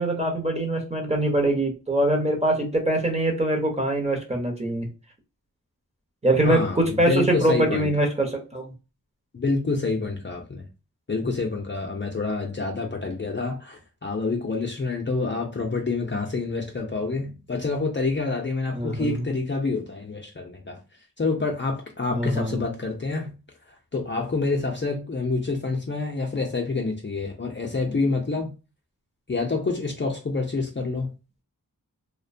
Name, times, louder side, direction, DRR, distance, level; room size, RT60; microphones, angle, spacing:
voice 1, 0.0-4.9 6.2-8.7 18.8-19.1 22.1-22.7, right 1 dB, 20° right, 0.8 m, -23 dB
voice 2, 6.4-7.9 9.3-10.7 11.1-20.8 21.2-23.3 23.9-28.5 29.3-31.1, left 3 dB, 30° left, 0.5 m, -27 dB
2.6 x 2.1 x 2.5 m
wide cardioid pair, 65°, 37 cm